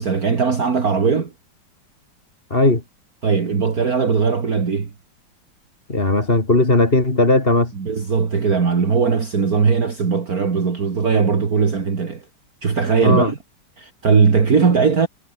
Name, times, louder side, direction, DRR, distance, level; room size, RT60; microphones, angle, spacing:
voice 1, 0.0-1.3 3.2-4.9 7.7-12.2 12.6-13.4 13.8-15.1, right 5 dB, 50° right, 2.5 m, -19 dB
voice 2, 2.5-2.8 5.9-7.7 13.0-13.3, left 2 dB, 30° left, 3.4 m, -17 dB
omnidirectional pair, 2.1 m